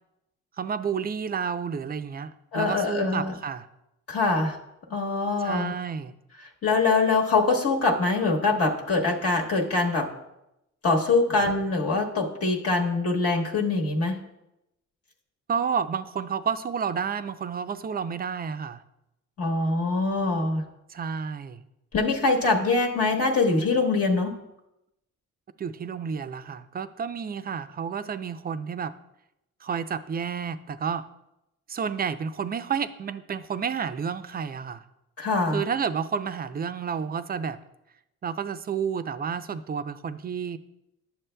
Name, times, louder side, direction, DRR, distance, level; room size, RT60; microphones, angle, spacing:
voice 1, 0.6-3.7 5.4-6.1 11.4-11.5 15.5-18.8 20.9-21.7 25.6-28.9 29.6-31.1 31.7-34.8 35.5-37.6 38.2-40.6, right 6 dB, 30° right, 11 dB, 0.4 m, -30 dB
voice 2, 2.5-3.3 4.1-4.6 4.9-5.7 6.6-10.1 10.8-14.2 19.4-20.6 21.9-24.4 35.2-35.6, left 3 dB, 50° left, 0 dB, 1.2 m, -23 dB
10.5 x 7.0 x 2.2 m, 0.87 s
cardioid pair, 90°, 30 cm